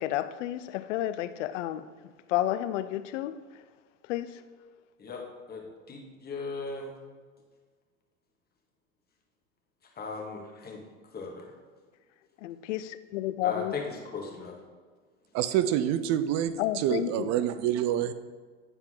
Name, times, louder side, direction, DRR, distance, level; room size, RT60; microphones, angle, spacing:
voice 1, 0.0-1.9 2.3-3.6 4.0-4.4 12.4-13.7 16.6-17.3, left 13 dB, 75° left, 0.6 m, -31 dB
voice 2, 5.0-6.9 10.0-10.8 11.1-11.5 13.4-14.5, left 4 dB, 25° left, 1.9 m, -37 dB
voice 3, 15.3-18.1, right 10 dB, 45° right, 0.6 m, -27 dB
9.7 x 4.4 x 3.8 m
hypercardioid pair, 100°, 37 cm